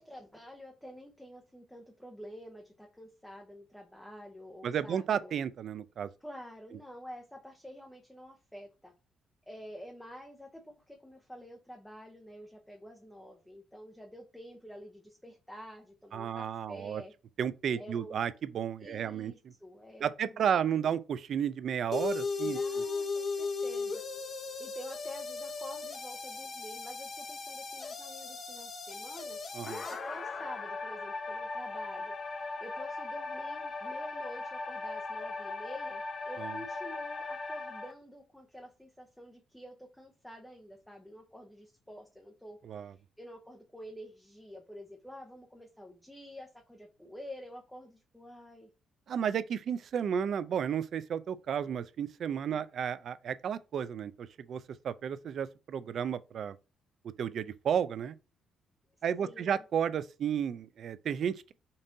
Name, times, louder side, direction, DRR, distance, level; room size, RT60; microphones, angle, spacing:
voice 1, 0.0-5.4 6.2-8.9 9.5-17.1 17.7-18.2 18.8-20.9 22.4-24.0 24.3-29.4 29.9-32.1 32.6-48.7 52.3-52.6 59.2-59.6, equal, 5° left, 0.7 m, -49 dB
voice 2, 4.6-6.1 16.1-17.0 17.4-19.3 20.0-22.6 29.5-29.9 36.4-36.6 42.6-42.9 49.1-56.6 57.2-58.2 59.0-61.5, right 8 dB, 60° right, 0.3 m, -33 dB
sound 1, 21.9-37.9, left 4 dB, 45° left, 0.7 m, -37 dB
5.3 x 2.6 x 2.6 m
cardioid pair, 90°, 0 cm